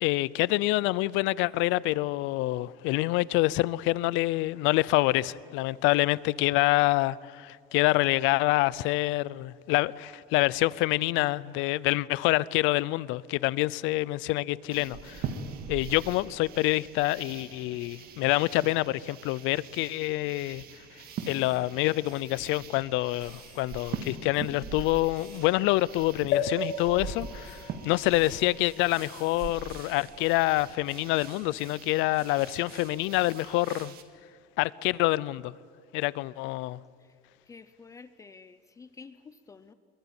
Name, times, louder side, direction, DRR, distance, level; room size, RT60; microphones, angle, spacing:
voice 1, 0.0-15.3 15.7-20.6 20.9-34.0 34.6-35.5 35.9-36.8, left 19 dB, 85° left, 0.6 m, -26 dB
sound 1, 14.7-34.0, right 6 dB, 50° right, 1.8 m, -43 dB
sound 2, 21.1-21.6 22.0-22.3 23.2-23.7 24.3-24.5 25.2-25.4 26.3-26.5 27.4-27.6 28.1-29.5, left 2 dB, ahead, 7.1 m, -57 dB
sound 3, 26.3-30.0 30.6-30.7 30.9-31.0, left 6 dB, 60° left, 3.5 m, -35 dB
voice 2, 37.5-39.7, left 4 dB, 15° left, 0.5 m, -49 dB
23.0 x 22.5 x 8.8 m
cardioid pair, 180°, 20 cm